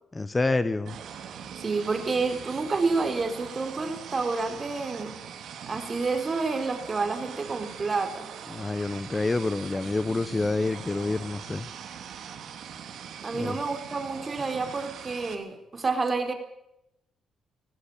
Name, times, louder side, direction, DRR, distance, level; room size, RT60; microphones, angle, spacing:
voice 1, 0.1-1.0 8.5-11.7 13.3-13.6, left 3 dB, 20° left, 13 dB, 1.1 m, -28 dB
sound 1, 0.9-15.4, right 8 dB, 70° right, 3.0 m, -42 dB
voice 2, 1.6-5.2 5.7-8.3 13.2-16.3, right 4 dB, 30° right, 6 dB, 4.3 m, -29 dB
18.0 x 16.5 x 8.8 m, 0.82 s
cardioid pair, 90°, 0 cm